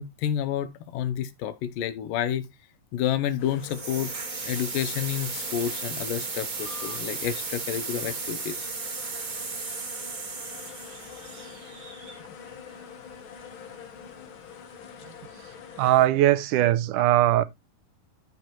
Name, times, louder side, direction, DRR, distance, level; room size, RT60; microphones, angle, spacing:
voice 1, 0.0-2.5 2.9-4.1 4.4-8.7, left 10 dB, 90° left, 2.6 m, -30 dB
sound 1, 3.4-16.1, left 7 dB, 55° left, 1.5 m, -45 dB
sound 2, 3.6-12.5, right 4 dB, 35° right, 2.0 m, -35 dB
voice 2, 15.8-17.4, right 14 dB, 80° right, 2.2 m, -20 dB
13.5 x 5.2 x 3.1 m
omnidirectional pair, 3.8 m